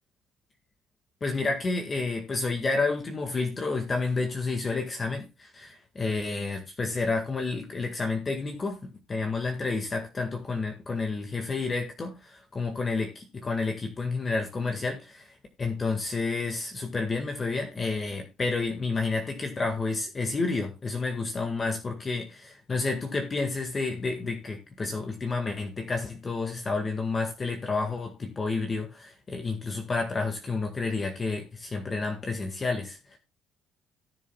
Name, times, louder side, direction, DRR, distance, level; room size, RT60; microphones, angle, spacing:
voice 1, 1.2-33.2, left 3 dB, 25° left, 1.8 m, -30 dB
17.5 x 7.4 x 2.3 m
cardioid pair, 120°, 0 cm